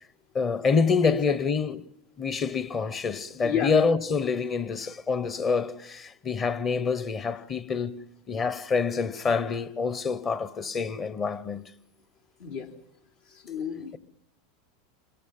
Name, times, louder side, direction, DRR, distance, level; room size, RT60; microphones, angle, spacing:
voice 1, 0.3-1.9 2.2-11.6, left 5 dB, 30° left, 1.1 m, -27 dB
voice 2, 1.0-1.4 3.4-3.7 12.4-12.7 13.3-14.0, left 7 dB, 80° left, 3.8 m, -31 dB
27.5 x 22.5 x 5.6 m
hypercardioid pair, 110°, 0 cm